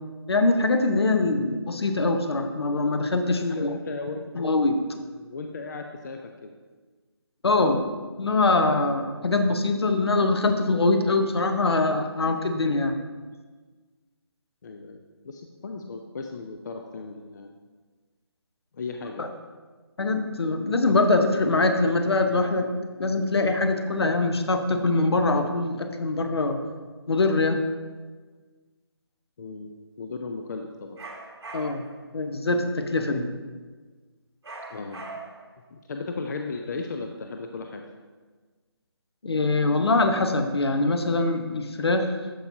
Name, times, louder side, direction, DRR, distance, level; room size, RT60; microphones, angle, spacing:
voice 1, 0.3-3.7 4.3-4.8 7.4-7.8 8.2-12.9 19.2-19.3 20.0-22.7 23.0-26.6 27.1-27.6 31.5-31.8 32.1-33.3 39.2-42.1, left 2 dB, 70° left, 6 dB, 0.9 m, -23 dB
voice 2, 3.2-4.3 5.1-6.6 9.2-9.4 14.6-17.5 18.7-19.3 29.4-31.0 34.7-35.2 35.7-37.8, left 3 dB, 45° left, 4 dB, 0.5 m, -36 dB
sound 1, 31.0-32.0 34.4-35.5, right 3 dB, 70° right, 1.3 m, -40 dB
13.0 x 4.6 x 2.7 m, 1.4 s
figure-of-eight pair, 155°, 14 cm